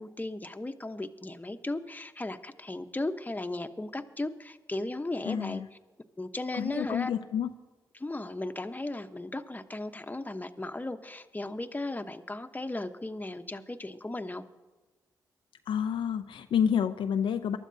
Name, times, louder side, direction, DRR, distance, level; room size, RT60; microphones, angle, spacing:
voice 1, 0.0-5.8 6.2-7.1 7.9-14.4, left 2 dB, 20° left, 7 dB, 1.1 m, -36 dB
voice 2, 5.3-5.7 6.5-7.5 15.7-17.6, left 8 dB, 70° left, 8 dB, 0.6 m, -29 dB
23.5 x 12.5 x 2.8 m, 1.2 s
supercardioid pair, 40°, 9 cm